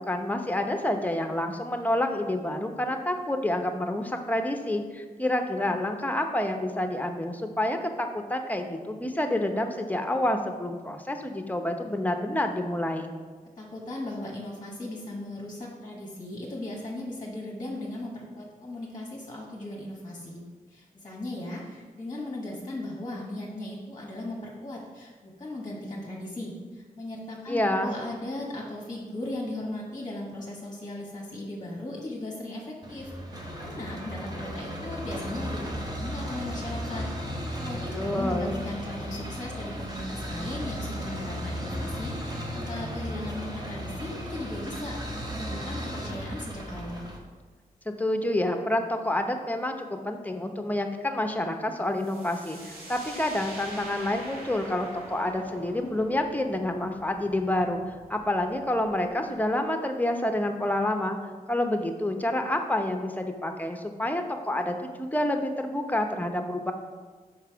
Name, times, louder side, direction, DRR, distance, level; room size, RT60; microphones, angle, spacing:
voice 1, 0.1-13.1 27.5-27.9 37.9-38.6 47.9-57.8 58.1-61.2 61.5-66.7, left 1 dB, 10° left, 5 dB, 0.7 m, -28 dB
voice 2, 13.6-20.4 20.7-37.1 37.3-45.0 45.3-47.1, left 1 dB, 25° left, -3 dB, 1.2 m, -37 dB
sound 1, 32.8-47.2, equal, 25° right, 1.2 m, -35 dB
sound 2, 51.9-59.5, right 1 dB, 85° right, 1.9 m, -45 dB
5.6 x 5.1 x 4.6 m, 1.4 s
cardioid pair, 70°, 15 cm